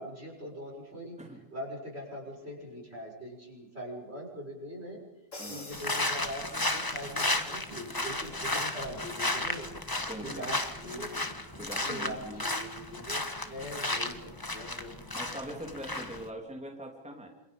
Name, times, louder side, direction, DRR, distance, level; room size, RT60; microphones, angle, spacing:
voice 1, 0.0-1.2 1.5-5.0 5.5-9.7 10.1-15.0, equal, 55° right, -1 dB, 7.0 m, -42 dB
Crash cymbal, 5.3-7.0, left 2 dB, 75° left, 5.8 m, -47 dB
voice 2, 5.4-5.7 10.1-10.5 11.6-12.4 15.1-17.3, equal, 5° right, 1 dB, 3.0 m, -42 dB
sound 1, 5.7-16.3, left 2 dB, 15° left, 1.5 m, -34 dB
28.0 x 27.5 x 5.4 m, 0.94 s
omnidirectional pair, 1.3 m